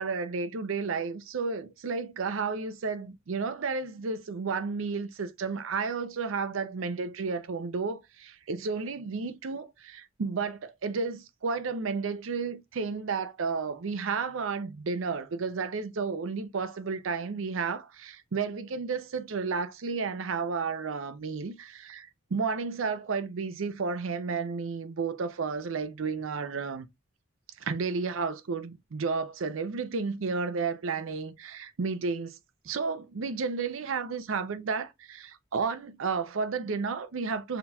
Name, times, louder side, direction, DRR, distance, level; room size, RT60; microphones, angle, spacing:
voice 1, 0.0-26.9 27.6-32.4 32.6-37.6, right 4 dB, 80° right, 0.5 m, -32 dB
5.8 x 2.8 x 2.3 m
head